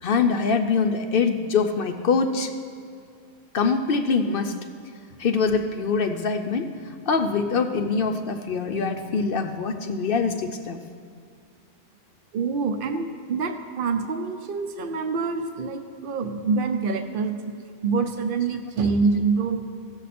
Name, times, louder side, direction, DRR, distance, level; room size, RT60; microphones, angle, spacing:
voice 1, 0.0-2.5 3.5-4.5 5.2-10.8, left 5 dB, 60° left, 6 dB, 0.7 m, -24 dB
voice 2, 12.3-17.4 17.8-19.6, right 4 dB, 50° right, 7 dB, 0.8 m, -26 dB
15.5 x 7.0 x 4.2 m, 2.4 s
omnidirectional pair, 1.2 m